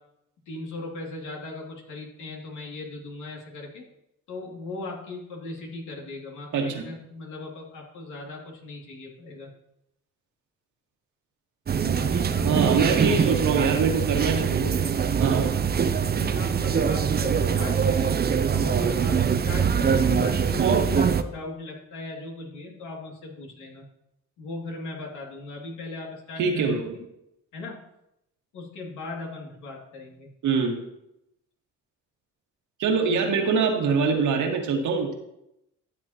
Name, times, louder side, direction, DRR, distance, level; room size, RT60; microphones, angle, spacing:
voice 1, 0.5-3.8 4.3-9.5 12.0-12.8 15.4-15.7 16.1-18.2 18.5-23.8 24.4-26.7 26.9-27.1 27.5-27.8 28.5-30.3 33.1-33.2, left 3 dB, 80° left, -1 dB, 2.6 m, -38 dB
voice 2, 6.5-6.8 12.4-14.7 15.2-15.5 20.6-20.8 26.4-26.9 30.4-30.8 32.8-35.1, right 5 dB, 75° right, 2 dB, 1.8 m, -24 dB
sound 1, 11.7-21.2, right 7 dB, 35° right, 0.6 m, -23 dB
13.0 x 7.6 x 2.9 m, 0.83 s
cardioid pair, 90°, 30 cm